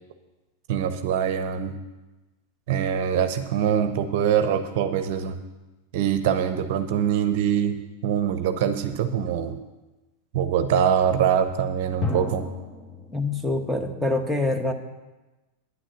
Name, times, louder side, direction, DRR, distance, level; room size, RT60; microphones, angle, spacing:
voice 1, 0.7-1.8 2.7-5.4 5.9-7.8 8.0-9.6 10.3-12.5, right 8 dB, 50° right, 9 dB, 0.8 m, -23 dB
sound 1, 12.0-13.9, left 3 dB, 20° left, 1.7 m, -35 dB
voice 2, 13.1-14.7, left 2 dB, ahead, 6 dB, 1.2 m, -25 dB
10.0 x 9.6 x 6.8 m, 1.1 s
figure-of-eight pair, 90°, 0 cm